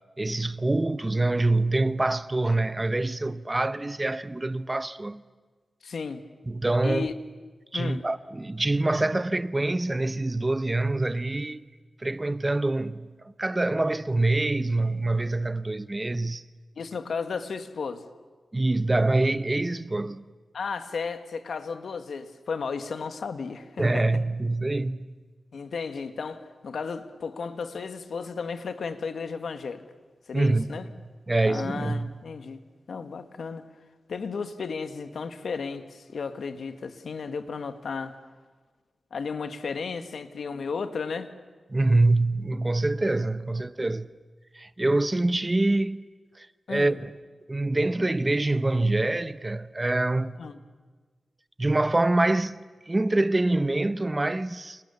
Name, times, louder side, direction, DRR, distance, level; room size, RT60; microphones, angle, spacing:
voice 1, 0.2-5.2 6.5-7.1 7.7-11.6 12.0-13.1 13.4-16.4 18.5-20.2 23.8-25.2 30.3-30.7 31.3-32.1 41.7-44.1 44.5-46.0 46.4-47.1 47.5-50.4 51.6-52.6 52.9-54.8, right 2 dB, 20° right, 0.7 m, -25 dB
voice 2, 5.8-6.2 6.8-7.1 7.7-8.0 16.8-18.1 20.5-24.0 25.5-29.8 30.3-30.9 31.5-32.6 32.9-33.6 34.1-38.2 39.1-41.3 46.7-47.0 50.4-50.6, left 5 dB, 75° left, 1.7 m, -34 dB
30.0 x 28.0 x 7.1 m
wide cardioid pair, 105°, 0 cm